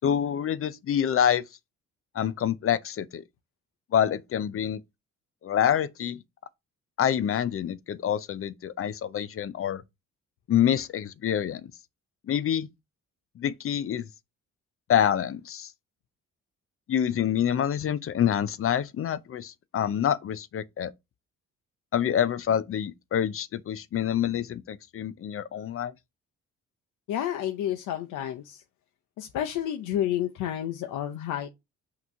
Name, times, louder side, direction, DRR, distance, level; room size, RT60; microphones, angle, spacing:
voice 1, 0.0-1.4 2.1-3.2 3.9-4.8 5.4-6.2 7.0-9.8 10.5-11.7 12.3-12.7 13.4-14.1 14.9-15.7 16.9-20.9 21.9-25.9, left 9 dB, 45° left, 0.5 m, -26 dB
voice 2, 27.1-28.6 29.2-31.5, left 11 dB, 90° left, 0.7 m, -30 dB
5.8 x 3.0 x 5.4 m
cardioid pair, 90°, 30 cm